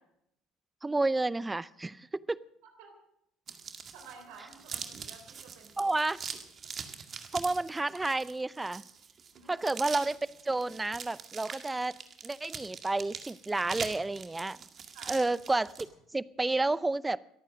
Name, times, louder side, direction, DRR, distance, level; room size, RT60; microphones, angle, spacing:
voice 1, 0.8-2.4 5.8-6.2 7.3-8.8 9.5-10.2 10.4-12.0 12.2-14.6 15.1-15.9 16.1-17.2, right 2 dB, 15° right, 19 dB, 0.6 m, -30 dB
sound 1, 3.5-15.8, right 6 dB, 40° right, 1.9 m, -43 dB
voice 2, 3.9-5.9 9.3-9.6 14.9-15.2, right 5 dB, 75° right, 5 dB, 3.6 m, -52 dB
23.5 x 9.1 x 6.3 m, 0.76 s
supercardioid pair, 85°, 0 cm